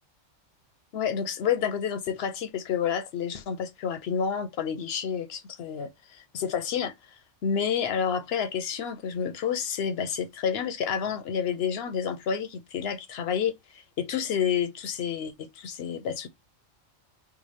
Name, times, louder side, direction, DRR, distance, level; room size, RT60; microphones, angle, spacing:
voice 1, 0.9-6.9 7.4-16.3, left 7 dB, 60° left, 0.7 m, -29 dB
4.7 x 2.2 x 3.2 m
omnidirectional pair, 1.3 m